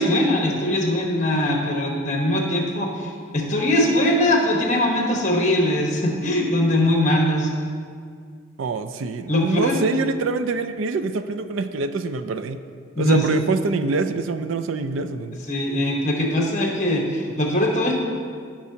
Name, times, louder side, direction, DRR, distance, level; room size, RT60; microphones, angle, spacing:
voice 1, 0.0-7.5 9.3-9.8 13.0-13.4 15.5-18.0, left 1 dB, 35° left, 0 dB, 1.1 m, -21 dB
voice 2, 8.6-12.6 13.0-15.4, right 4 dB, 65° right, 10 dB, 0.4 m, -25 dB
14.5 x 6.0 x 2.8 m, 2.1 s
head